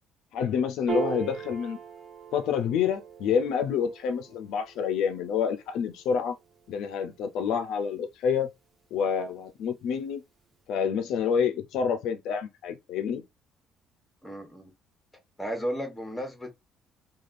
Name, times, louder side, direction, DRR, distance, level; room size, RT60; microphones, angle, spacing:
voice 1, 0.3-1.8 2.3-6.4 6.7-8.5 8.9-10.2 10.7-13.2, left 7 dB, 75° left, 0.4 m, -28 dB
Piano, 0.9-7.5, right 6 dB, 25° right, 0.9 m, -39 dB
voice 2, 14.2-14.7 15.4-16.6, equal, 5° left, 0.9 m, -34 dB
3.2 x 2.3 x 2.5 m
cardioid pair, 120°, 0 cm